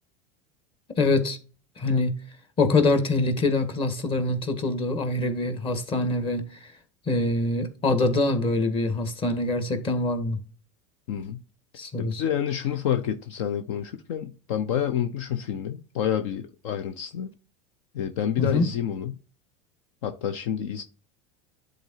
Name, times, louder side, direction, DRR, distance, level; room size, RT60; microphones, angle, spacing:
voice 1, 1.0-1.4 1.8-2.1 2.6-6.4 7.1-10.4 11.8-12.2 18.4-18.7, left 2 dB, 35° left, 1.7 m, -24 dB
voice 2, 11.1-11.4 12.0-17.3 17.9-19.2 20.0-20.8, left 9 dB, 70° left, 0.7 m, -28 dB
10.5 x 3.9 x 2.8 m
hypercardioid pair, 95°, 16 cm